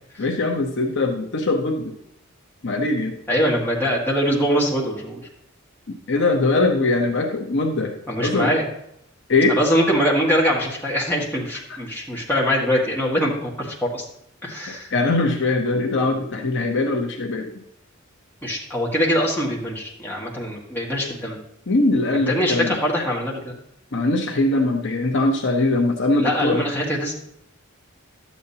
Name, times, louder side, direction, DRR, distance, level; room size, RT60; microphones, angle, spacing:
voice 1, 0.2-1.9 2.6-3.1 6.1-8.5 9.3-9.6 14.9-17.5 21.7-22.8 23.9-26.6, left 2 dB, 55° left, 2 dB, 0.9 m, -21 dB
voice 2, 3.3-5.2 8.1-8.7 9.5-14.0 14.4-14.9 18.4-21.4 22.3-23.6 26.2-27.1, equal, 10° left, -4 dB, 1.8 m, -23 dB
11.5 x 8.3 x 2.9 m, 0.76 s
head